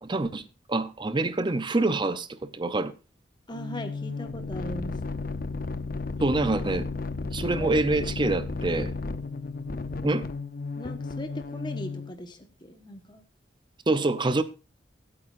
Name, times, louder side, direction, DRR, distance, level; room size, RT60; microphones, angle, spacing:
voice 1, 0.0-0.4 0.7-2.9 6.2-6.9 7.3-8.9 10.0-10.3 13.9-14.4, right 2 dB, 25° right, 0.6 m, -26 dB
sound 1, 3.5-12.1, left 3 dB, 50° left, 0.8 m, -33 dB
voice 2, 3.5-5.2 7.5-7.9 8.2-8.3 10.8-13.2, equal, 25° left, 1.3 m, -39 dB
23.5 x 8.7 x 2.6 m
head